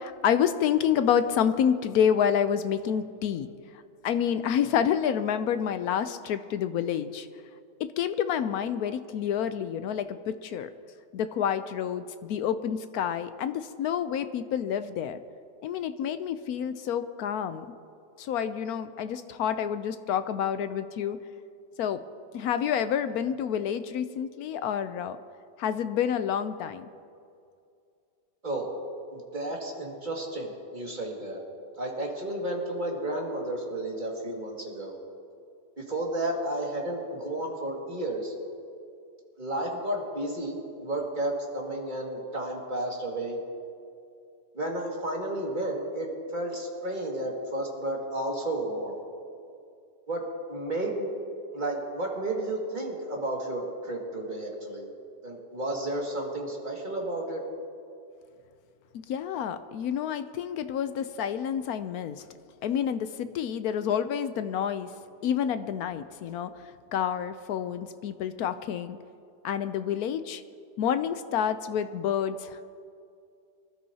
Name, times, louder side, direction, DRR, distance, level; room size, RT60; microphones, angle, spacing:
voice 1, 0.0-3.5 4.0-7.3 7.8-10.7 11.1-15.2 15.6-17.7 18.2-21.2 21.8-22.0 22.3-25.2 25.6-26.9 59.1-62.2 62.6-64.9 65.2-66.5 66.9-69.0 69.4-70.4 70.8-72.7, left 8 dB, 70° left, 11 dB, 1.0 m, -28 dB
voice 2, 29.1-31.4 31.8-35.0 35.8-38.3 39.4-43.4 44.5-49.0 50.1-51.1 51.5-54.9 55.2-57.4, right 1 dB, 25° right, -2 dB, 2.1 m, -32 dB
24.5 x 12.5 x 2.8 m, 2.4 s
omnidirectional pair, 1.8 m